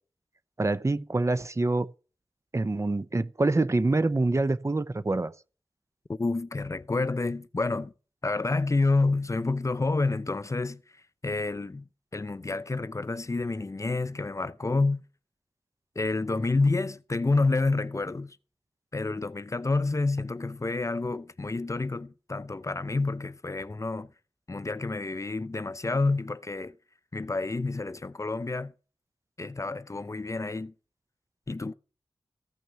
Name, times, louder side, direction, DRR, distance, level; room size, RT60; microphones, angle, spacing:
voice 1, 0.6-1.9 2.5-5.3, right 2 dB, 30° right, 0.8 m, -26 dB
voice 2, 6.1-7.9 8.2-10.8 11.2-15.0 16.0-18.4 18.9-24.1 24.5-26.7 27.1-28.7 29.4-30.7 31.5-31.7, left 3 dB, 35° left, 0.7 m, -29 dB
15.0 x 6.1 x 7.0 m
wide cardioid pair, 80°, 9 cm